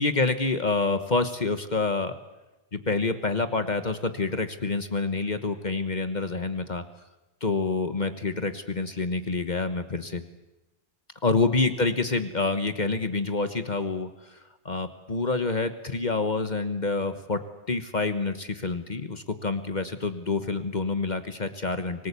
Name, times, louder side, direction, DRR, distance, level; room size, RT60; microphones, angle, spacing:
voice 1, 0.0-2.2 2.7-6.8 7.4-10.2 11.2-14.4 14.6-17.4 17.7-22.1, left 3 dB, 45° left, 9 dB, 1.3 m, -27 dB
25.5 x 19.5 x 8.3 m, 1.0 s
omnidirectional pair, 1.1 m